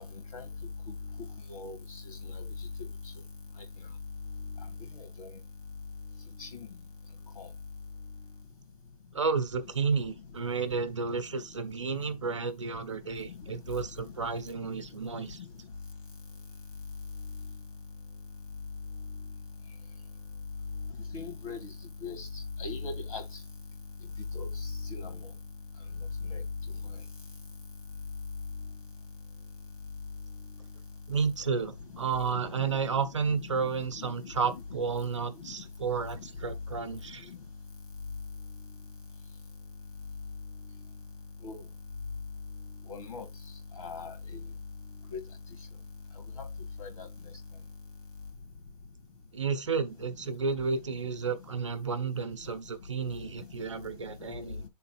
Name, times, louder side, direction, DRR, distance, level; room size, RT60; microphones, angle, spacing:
voice 1, 9.1-15.4 31.1-37.3 49.3-54.6, right 5 dB, 50° right, 0.9 m, -32 dB
voice 2, 21.1-21.6 22.0-22.3 22.6-23.2 24.3-25.1 26.3-26.4 32.6-32.7 34.0-34.1 34.5-34.6 41.4-41.6 42.9-43.2 43.8-44.1 45.1-45.2 46.8-47.1, left 4 dB, 60° left, 2.1 m, -38 dB
6.5 x 4.0 x 4.4 m
hypercardioid pair, 175°, 20 cm